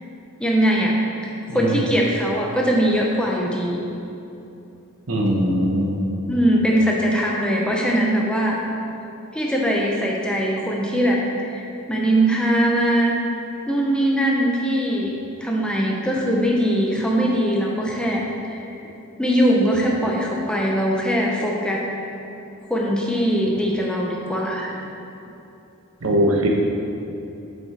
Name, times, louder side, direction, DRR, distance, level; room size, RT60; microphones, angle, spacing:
voice 1, 0.4-1.0 1.5-3.8 6.3-8.6 9.3-11.2 11.5-13.2 13.7-15.1 15.4-18.7 19.2-21.8 22.7-24.7, equal, 5° left, -2 dB, 0.5 m, -21 dB
voice 2, 5.1-6.0 26.0-26.5, equal, 70° right, 0 dB, 0.9 m, -20 dB
7.7 x 5.2 x 3.2 m, 2.9 s
head